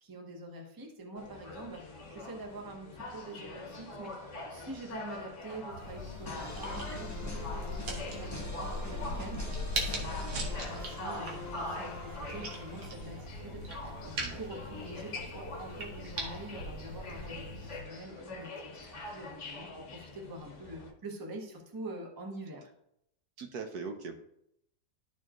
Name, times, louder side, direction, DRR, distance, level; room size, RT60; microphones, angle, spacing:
voice 1, 0.0-1.8 2.1-9.5 9.8-22.7, right 1 dB, 15° right, 1 dB, 0.8 m, -46 dB
sound 1, 1.1-20.9, left 2 dB, 50° left, 1.1 m, -44 dB
sound 2, 5.7-17.8, equal, 90° right, 2.0 m, -40 dB
sound 3, 6.3-13.2, left 2 dB, 10° left, 1.0 m, -45 dB
voice 2, 23.4-24.2, right 5 dB, 65° right, 4 dB, 1.2 m, -40 dB
12.5 x 4.5 x 3.0 m, 0.76 s
omnidirectional pair, 1.9 m